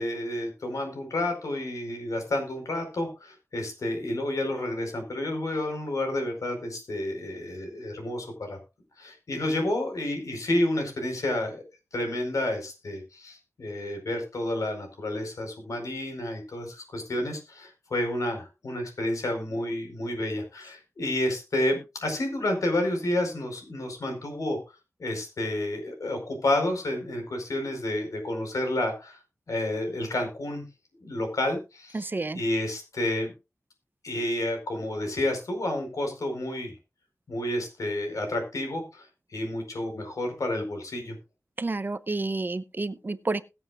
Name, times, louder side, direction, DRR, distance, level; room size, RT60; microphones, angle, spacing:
voice 1, 0.0-8.6 9.0-11.6 11.9-24.6 25.0-29.2 29.5-30.6 31.0-32.1 32.3-33.3 34.0-36.7 37.3-39.1 39.3-41.2, left 1 dB, 85° left, 4 dB, 4.7 m, -30 dB
voice 2, 31.9-32.4 41.6-43.4, right 3 dB, 35° right, 14 dB, 0.7 m, -30 dB
21.0 x 7.9 x 2.5 m, 0.27 s
wide cardioid pair, 105°, 6 cm